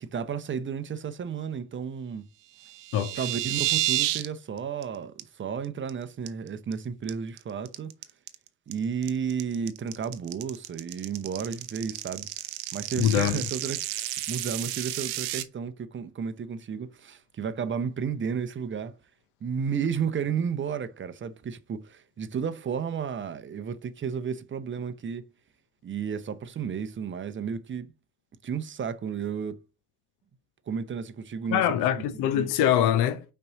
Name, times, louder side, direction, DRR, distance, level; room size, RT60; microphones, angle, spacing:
voice 1, 0.0-2.3 3.2-7.9 8.7-12.3 12.7-18.9 19.4-25.2 25.8-27.9 28.4-29.6 30.7-31.6 32.2-32.5, right 6 dB, 25° right, 0.7 m, -32 dB
sound 1, 2.6-4.3 4.6-4.8 5.2-5.3 5.6-5.9 6.3-6.7 7.1-15.4, right 16 dB, 60° right, 0.8 m, -31 dB
voice 2, 2.9-3.2 12.9-13.5 31.5-33.2, left 10 dB, 55° left, 0.8 m, -24 dB
5.4 x 4.3 x 4.0 m
figure-of-eight pair, 55°, 48 cm